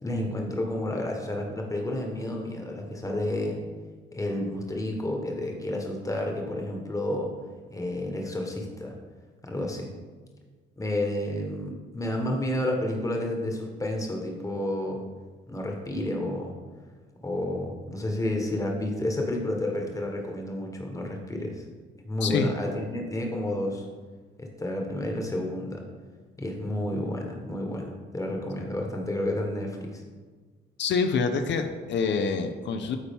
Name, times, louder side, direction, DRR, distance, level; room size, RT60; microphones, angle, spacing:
voice 1, 0.0-3.6 4.1-7.3 7.7-9.0 9.4-9.9 10.8-15.0 15.5-16.5 17.2-21.6 22.0-23.9 24.4-25.8 26.4-30.0, left 1 dB, 15° left, 1 dB, 1.2 m, -30 dB
voice 2, 22.2-22.5 30.8-33.0, left 5 dB, 65° left, 6 dB, 0.6 m, -26 dB
8.5 x 4.3 x 3.6 m, 1.4 s
cardioid pair, 90°, 20 cm